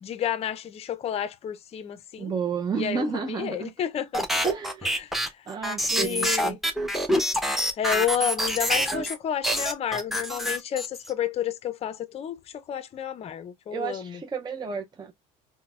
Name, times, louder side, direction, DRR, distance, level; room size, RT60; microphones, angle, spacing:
voice 1, 0.0-2.3 2.8-4.2 4.8-5.1 5.9-6.6 7.8-14.2, left 9 dB, 35° left, 0.5 m, -30 dB
voice 2, 2.2-3.7 4.4-4.8 5.5-6.6 13.7-15.1, right 6 dB, 25° right, 0.5 m, -31 dB
sound 1, 4.1-9.2 9.4-11.1, equal, ahead, 0.9 m, -26 dB
3.9 x 2.1 x 2.3 m
supercardioid pair, 80°, 18 cm